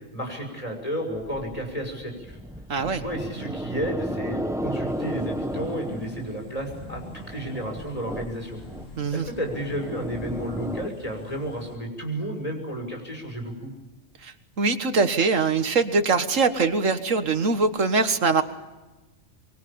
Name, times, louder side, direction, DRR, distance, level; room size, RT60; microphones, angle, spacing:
voice 1, 0.1-2.4 2.9-8.6 9.1-13.7, equal, 30° left, 3 dB, 6.3 m, -32 dB
sound 1, 1.1-10.9, equal, 5° right, 1.1 m, -34 dB
voice 2, 2.7-3.0 9.0-9.3 14.2-18.4, right 4 dB, 85° right, 10 dB, 2.0 m, -23 dB
sound 2, 4.9-11.8, left 3 dB, 85° left, 2.9 m, -46 dB
24.5 x 23.5 x 8.7 m, 1.1 s
omnidirectional pair, 1.3 m